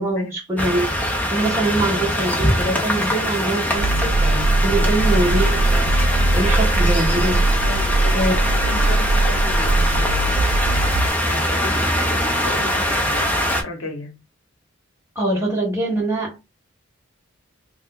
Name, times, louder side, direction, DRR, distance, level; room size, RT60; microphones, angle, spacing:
voice 1, 0.0-5.9 6.3-7.5 8.1-8.4 15.1-16.4, right 2 dB, 10° right, 1.0 m, -23 dB
sound 1, 0.6-13.6, equal, 10° left, 0.5 m, -22 dB
sound 2, 3.8-11.1, right 2 dB, 70° right, 0.3 m, -20 dB
voice 2, 7.6-10.7 11.3-14.2, left 2 dB, 75° left, 0.9 m, -34 dB
2.7 x 2.2 x 3.5 m
head